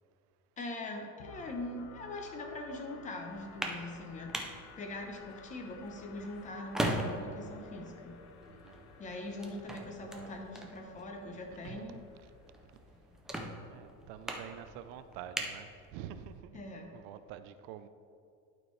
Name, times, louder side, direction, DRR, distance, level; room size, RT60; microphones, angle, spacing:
voice 1, 0.6-4.4 4.8-8.2 9.0-12.0 16.5-16.9, left 2 dB, 25° left, 3 dB, 0.7 m, -42 dB
sound 1, 1.2-13.0, left 6 dB, 85° left, 0.8 m, -56 dB
sound 2, 3.3-16.4, right 1 dB, ahead, 0.3 m, -42 dB
voice 2, 8.5-8.9 9.7-10.3 11.6-11.9 13.7-16.6 16.9-17.9, right 10 dB, 75° right, 11 dB, 0.5 m, -47 dB
11.0 x 4.5 x 3.2 m, 2.4 s
cardioid pair, 165°, 32 cm